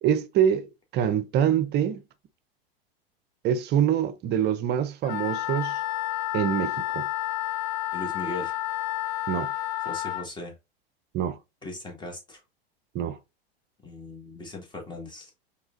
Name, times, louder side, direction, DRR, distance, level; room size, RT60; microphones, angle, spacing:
voice 1, 0.0-2.0 3.4-5.8 6.3-7.1 9.3-9.5 11.1-11.4 12.9-13.2, right 9 dB, 35° right, 0.6 m, -25 dB
Wind instrument woodwind instrument, 5.0-10.3, left 15 dB, 55° left, 0.7 m, -30 dB
voice 2, 7.9-8.6 9.8-10.5 11.6-12.4 13.8-15.3, left 2 dB, 15° left, 1.7 m, -38 dB
4.8 x 3.3 x 2.5 m
hypercardioid pair, 100°, 30 cm